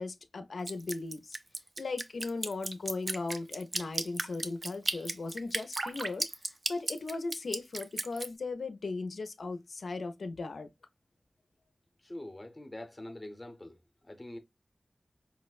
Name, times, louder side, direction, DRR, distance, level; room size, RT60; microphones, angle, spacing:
voice 1, 0.0-1.4 1.8-6.3 6.7-10.7, left 3 dB, 90° left, 0.4 m, -37 dB
Drip, 0.7-8.3, right 2 dB, 50° right, 0.4 m, -35 dB
voice 2, 12.0-13.8 14.0-14.4, left 1 dB, 20° left, 0.6 m, -44 dB
4.7 x 2.0 x 2.3 m
wide cardioid pair, 90°, 0 cm